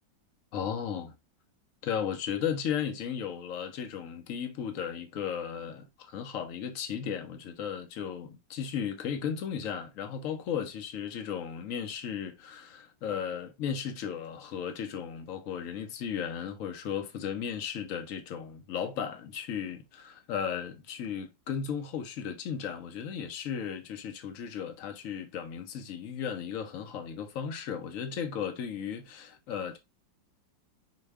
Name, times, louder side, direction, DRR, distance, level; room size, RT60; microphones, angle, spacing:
voice 1, 0.5-1.1 1.8-29.8, left 8 dB, 60° left, 0.9 m, -35 dB
5.8 x 2.3 x 3.4 m
omnidirectional pair, 2.1 m